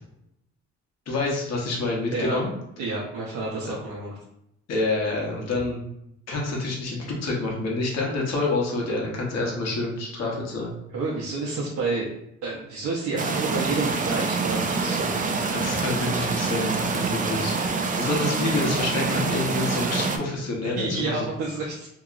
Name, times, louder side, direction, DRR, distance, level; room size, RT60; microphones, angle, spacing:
voice 1, 1.1-2.5 3.6-3.7 4.7-5.8 6.3-10.8 15.5-17.5 18.0-21.2, left 2 dB, 60° left, -2 dB, 1.0 m, -27 dB
voice 2, 2.1-2.4 2.8-4.2 10.9-12.1 12.4-15.3 19.1-19.2 20.6-21.9, right 3 dB, 75° right, -5 dB, 0.7 m, -29 dB
sound 1, 13.2-20.2, right 4 dB, 30° right, 0.4 m, -26 dB
2.9 x 2.8 x 2.4 m, 0.80 s
cardioid pair, 90°, 30 cm